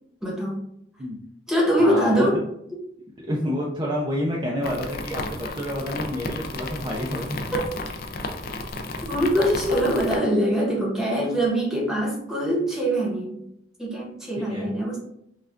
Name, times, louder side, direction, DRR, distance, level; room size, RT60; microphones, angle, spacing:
voice 1, 0.2-0.6 1.5-2.4 7.5-7.6 9.1-13.4 13.8-15.0, equal, 5° right, -4 dB, 1.0 m, -23 dB
voice 2, 1.8-2.3 3.2-7.4 9.1-9.2 14.5-14.7, equal, 25° right, -3 dB, 0.4 m, -29 dB
sound 1, 4.6-10.2, left 2 dB, 50° left, 0.4 m, -33 dB
5.5 x 2.4 x 2.5 m, 0.74 s
head